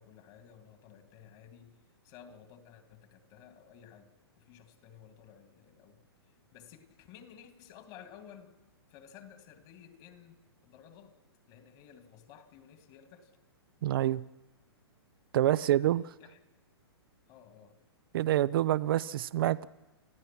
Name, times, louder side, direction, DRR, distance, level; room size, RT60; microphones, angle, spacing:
voice 1, 0.0-1.8 2.0-6.0 6.3-8.6 8.9-10.4 10.6-11.1 11.5-13.3 15.7-16.4 17.3-17.8, left 9 dB, 40° left, 6 dB, 2.7 m, -54 dB
voice 2, 13.8-14.2 15.3-16.1 18.1-19.6, right 13 dB, 60° right, 17 dB, 0.7 m, -27 dB
29.5 x 15.0 x 6.0 m, 1.0 s
hypercardioid pair, 120°, 13 cm